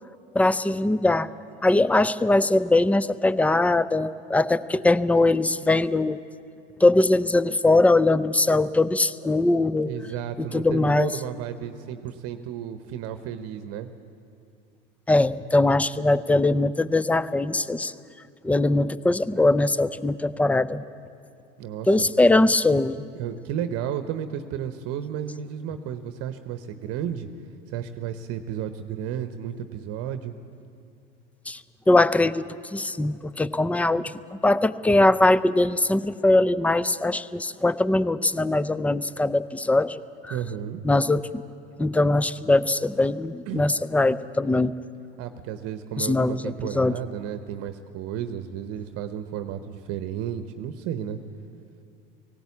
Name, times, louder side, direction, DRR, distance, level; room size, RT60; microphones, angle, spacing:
voice 1, 0.3-1.3 1.6-6.2 6.8-9.9 10.4-11.1 15.1-17.9 18.4-20.8 21.9-23.0 31.5-31.6 31.9-32.5 32.7-40.4 40.8-41.4 41.8-44.7 46.0-47.0, left 2 dB, 5° left, 17 dB, 0.4 m, -21 dB
voice 2, 9.8-13.9 21.6-22.1 23.1-27.3 27.7-30.3 34.0-34.1 40.3-40.8 43.5-43.6 45.2-51.2, right 9 dB, 55° right, 10 dB, 0.9 m, -33 dB
18.0 x 17.0 x 8.4 m, 2.4 s
hypercardioid pair, 85°, 30 cm